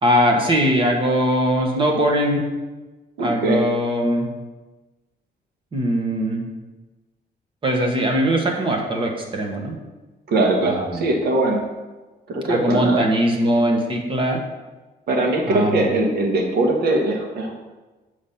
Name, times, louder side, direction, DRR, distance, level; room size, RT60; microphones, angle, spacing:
voice 1, 0.0-2.4 3.2-4.3 5.7-6.4 7.6-9.8 10.6-11.0 12.5-14.4 15.5-15.9, equal, 30° right, 2 dB, 1.3 m, -20 dB
voice 2, 3.2-3.6 10.3-11.6 12.3-13.1 15.1-17.5, right 2 dB, 70° right, 2 dB, 1.4 m, -21 dB
7.3 x 4.9 x 5.7 m, 1.2 s
cardioid pair, 145°, 17 cm